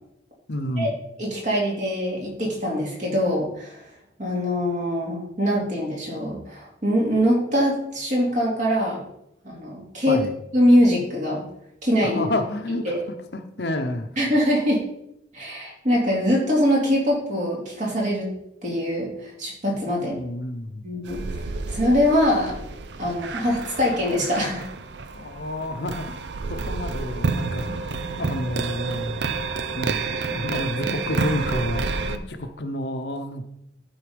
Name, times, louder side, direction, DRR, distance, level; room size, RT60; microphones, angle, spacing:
voice 1, 0.5-0.9 10.1-10.3 12.0-14.1 20.0-20.8 25.1-26.2 26.5-27.9 28.2-29.2 29.7-33.4, left 1 dB, 65° left, 7 dB, 0.8 m, -30 dB
voice 2, 1.2-3.8 4.2-9.0 9.4-10.2 10.5-11.4 11.8-12.2 12.8-13.0 14.2-14.8 15.3-18.2 18.6-20.2 20.8-22.6 23.0-24.6 30.8-30.9, equal, 45° right, -3 dB, 2.7 m, -23 dB
sound 1, 21.1-32.2, right 4 dB, 70° right, 0.6 m, -29 dB
12.0 x 4.1 x 5.2 m, 0.78 s
head